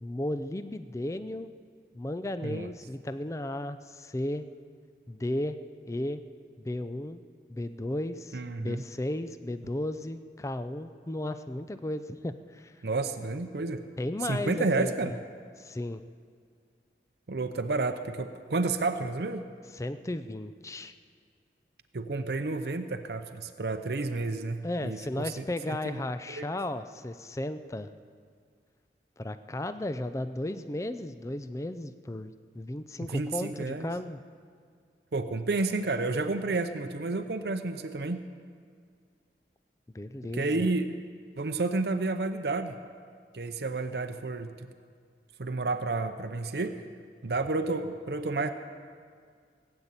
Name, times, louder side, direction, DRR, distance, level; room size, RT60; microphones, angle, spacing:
voice 1, 0.0-1.5 1.9-4.4 5.1-5.6 5.9-6.2 6.6-7.2 7.5-12.7 14.0-15.2 15.6-16.0 19.8-20.9 24.6-27.9 29.2-34.2 39.9-40.6, left 1 dB, 15° left, 11 dB, 0.4 m, -34 dB
voice 2, 8.3-8.8 12.8-13.8 14.2-15.2 17.3-19.5 21.9-26.0 26.4-26.5 33.1-33.9 35.1-38.2 40.3-40.9 41.4-42.8 43.3-44.7 45.4-46.8 47.2-48.5, right 3 dB, 65° right, 8 dB, 0.7 m, -31 dB
17.5 x 8.8 x 8.2 m, 2.1 s
head